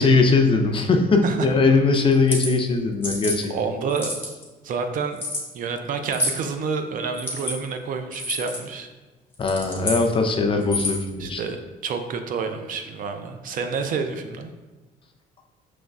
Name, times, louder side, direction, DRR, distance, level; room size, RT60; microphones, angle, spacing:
voice 1, 0.0-3.5 9.4-11.4, left 3 dB, 30° left, 4 dB, 0.4 m, -20 dB
sound 1, 2.1-2.5 3.0-3.4 3.9-4.4 5.2-5.4 6.1-6.4 7.1-7.5 8.1-8.6 9.3-10.0 10.6-11.1, left 1 dB, 15° left, 1.0 m, -28 dB
voice 2, 3.5-4.1 4.6-5.2 5.5-8.9 11.2-11.6 11.8-14.5, right 5 dB, 55° right, 7 dB, 0.4 m, -28 dB
5.1 x 3.1 x 2.3 m, 1.2 s
cardioid pair, 110°, 17 cm